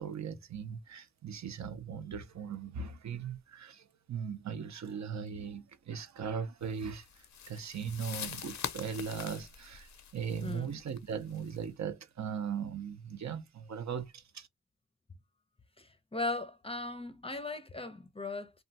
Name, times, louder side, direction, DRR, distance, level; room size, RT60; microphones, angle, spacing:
voice 1, 0.0-14.5, right 7 dB, 65° right, 0.6 m, -39 dB
sound 1, 6.7-11.6, left 8 dB, 65° left, 0.5 m, -44 dB
voice 2, 10.4-10.8 15.8-18.5, left 2 dB, 20° left, 0.5 m, -38 dB
3.0 x 2.2 x 2.6 m
wide cardioid pair, 75°, 30 cm